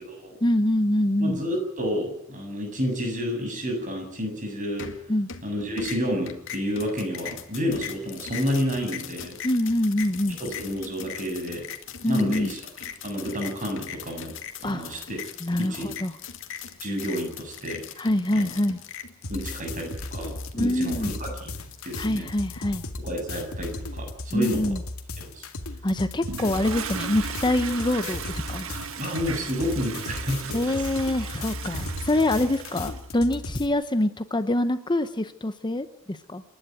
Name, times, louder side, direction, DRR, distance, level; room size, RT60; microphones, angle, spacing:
voice 1, 0.4-1.4 5.1-5.3 9.4-10.4 12.0-12.5 14.6-15.0 15.4-16.2 18.0-18.8 20.5-21.1 22.0-22.8 24.3-24.8 25.8-28.7 30.5-36.4, left 1 dB, 20° left, 11 dB, 0.8 m, -25 dB
voice 2, 1.2-4.9 5.4-9.4 10.4-11.6 12.1-12.6 13.0-14.3 14.6-15.2 15.6-15.9 16.8-17.8 18.3-18.5 19.3-21.4 21.8-22.3 23.0-24.7 25.2-25.5 29.0-30.9 31.3-31.4, equal, 40° right, 3 dB, 7.6 m, -30 dB
sound 1, 4.8-5.5 5.8-22.6, left 8 dB, 65° left, 2.1 m, -40 dB
sound 2, 19.2-33.7, left 2 dB, 90° left, 2.2 m, -36 dB
Toilet flush, 26.2-33.1, right 5 dB, 70° right, 1.7 m, -36 dB
28.5 x 11.5 x 9.2 m, 0.69 s
head